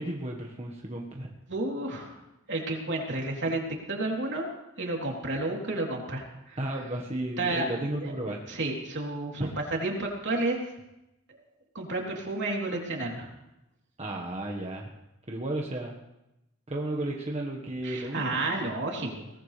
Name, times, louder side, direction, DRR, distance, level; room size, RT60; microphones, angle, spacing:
voice 1, 0.0-1.3 6.6-8.5 9.4-9.6 14.0-14.9 15.3-16.0 16.7-18.6, right 1 dB, 30° right, 0 dB, 1.5 m, -33 dB
voice 2, 1.5-2.2 2.5-3.6 3.9-4.5 4.8-6.6 7.4-10.6 11.3-11.4 11.8-13.3 17.8-19.3, right 2 dB, 60° right, -1 dB, 3.5 m, -31 dB
22.5 x 18.5 x 3.4 m, 0.92 s
head